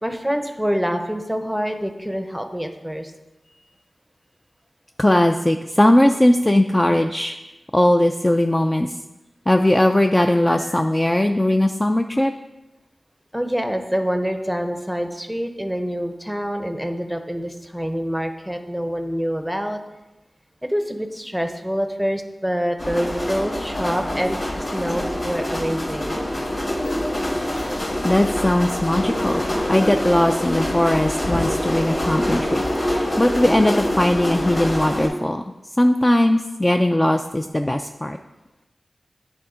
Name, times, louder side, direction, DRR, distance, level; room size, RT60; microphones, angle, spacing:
voice 1, 0.0-3.1 13.3-19.8 20.6-26.2, equal, ahead, 6 dB, 0.7 m, -26 dB
voice 2, 5.0-7.4 7.7-9.0 9.5-12.3 28.0-35.4 35.8-38.2, left 1 dB, 20° left, 5 dB, 0.3 m, -19 dB
sound 1, 22.8-35.1, left 1 dB, 80° left, 2.7 m, -25 dB
10.5 x 3.6 x 5.0 m, 1.0 s
wide cardioid pair, 85°, 0 cm